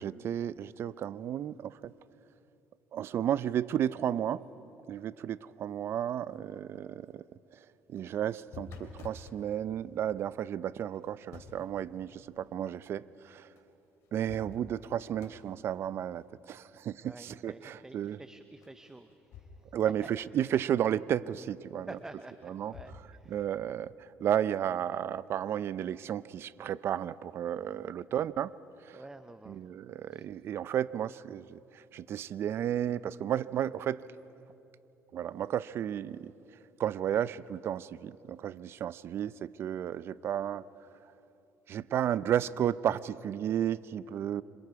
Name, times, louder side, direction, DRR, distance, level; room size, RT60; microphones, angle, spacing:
voice 1, 0.0-1.9 2.9-4.4 4.9-7.2 7.9-13.5 14.1-18.2 19.7-22.0 22.4-22.7 23.3-23.9 24.2-28.5 28.9-29.0 29.5-34.0 35.1-36.3 36.8-40.6 41.7-44.4, right 10 dB, 60° right, 18 dB, 0.6 m, -33 dB
sound 1, 7.8-9.4 10.9-11.7 13.6-13.7 14.0-14.9 15.2-15.5 18.6-19.7 20.0-20.1 22.0-22.9, left 6 dB, 75° left, 3.4 m, -49 dB
voice 2, 17.0-19.1 19.4-19.5 21.9-23.4 28.2-28.3 28.9-29.6 30.1-30.2, right 2 dB, 10° right, 10 dB, 0.8 m, -49 dB
26.5 x 26.5 x 4.8 m, 2.9 s
supercardioid pair, 90°, 5 cm